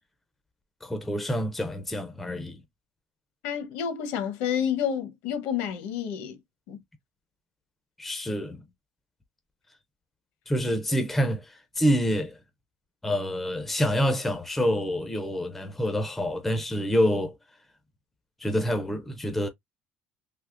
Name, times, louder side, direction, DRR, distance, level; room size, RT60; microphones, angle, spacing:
voice 1, 0.8-2.6 8.0-8.6 10.5-12.4 13.0-17.4 18.4-19.5, equal, 5° left, 0.4 m, -27 dB
voice 2, 3.4-6.4 6.7-6.8, left 8 dB, 70° left, 0.8 m, -29 dB
3.4 x 2.7 x 2.4 m
cardioid pair, 175°, 3 cm